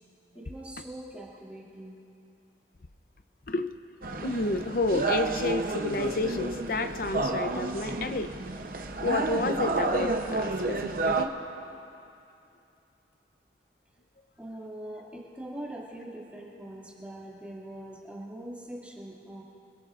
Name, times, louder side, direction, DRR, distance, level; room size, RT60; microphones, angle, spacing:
voice 1, 0.3-1.9 14.4-19.4, right 1 dB, 10° right, -6 dB, 2.3 m, -42 dB
sound 1, 4.0-11.2, right 3 dB, 50° right, 0.8 m, -30 dB
voice 2, 4.2-8.3 9.0-11.3, left 2 dB, 50° left, 9 dB, 0.6 m, -30 dB
28.5 x 17.0 x 2.5 m, 2.7 s
head